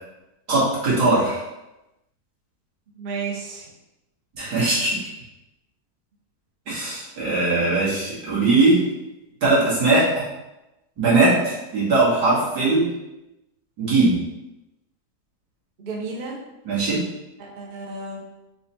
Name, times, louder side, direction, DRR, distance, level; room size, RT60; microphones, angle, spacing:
voice 1, 0.5-1.4 4.3-4.9 6.7-8.8 9.4-10.2 11.0-12.9 13.8-14.2 16.7-17.0, right 2 dB, 85° right, -9 dB, 2.4 m, -20 dB
voice 2, 2.9-3.7 15.8-16.4 17.4-18.2, right 4 dB, 40° right, -2 dB, 0.7 m, -32 dB
4.8 x 2.5 x 4.1 m, 0.97 s
omnidirectional pair, 1.7 m